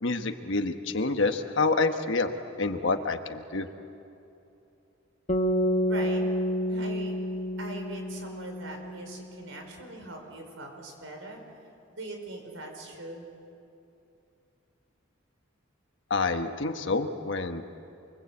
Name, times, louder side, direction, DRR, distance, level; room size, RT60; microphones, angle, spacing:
voice 1, 0.0-2.3 2.6-3.7 16.1-17.6, left 3 dB, 65° left, 6 dB, 1.3 m, -27 dB
sound 1, 5.3-9.5, equal, 35° left, 1.4 m, -29 dB
voice 2, 5.9-6.2 6.7-7.1 7.6-11.4 11.9-13.3, right 2 dB, 75° right, 3 dB, 5.2 m, -41 dB
29.0 x 23.0 x 8.5 m, 2.7 s
head